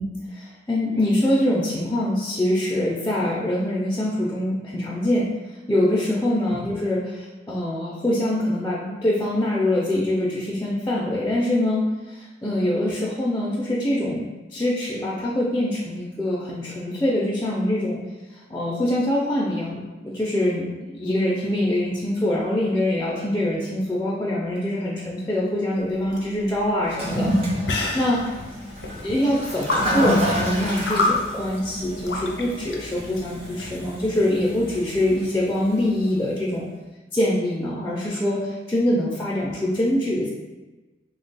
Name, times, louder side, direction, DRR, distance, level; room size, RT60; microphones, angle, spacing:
voice 1, 0.0-5.3 5.7-14.2 14.5-18.0 18.3-28.2 29.0-36.7 37.1-40.3, left 1 dB, 15° left, -5 dB, 0.4 m, -24 dB
sound 1, 25.8-33.8, left 2 dB, 80° left, 0.6 m, -30 dB
Toilet flush, 26.8-36.1, equal, 35° right, 0.7 m, -29 dB
3.2 x 2.2 x 3.9 m, 1.1 s
head